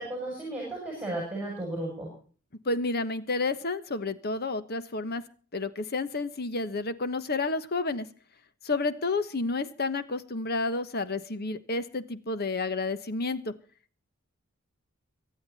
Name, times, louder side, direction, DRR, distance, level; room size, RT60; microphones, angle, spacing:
voice 1, 0.0-2.1, right 1 dB, 5° right, -2 dB, 7.4 m, -34 dB
voice 2, 2.6-5.2 5.5-8.1 8.6-13.5, left 3 dB, 50° left, 13 dB, 1.3 m, -30 dB
25.0 x 9.0 x 4.2 m, 0.42 s
head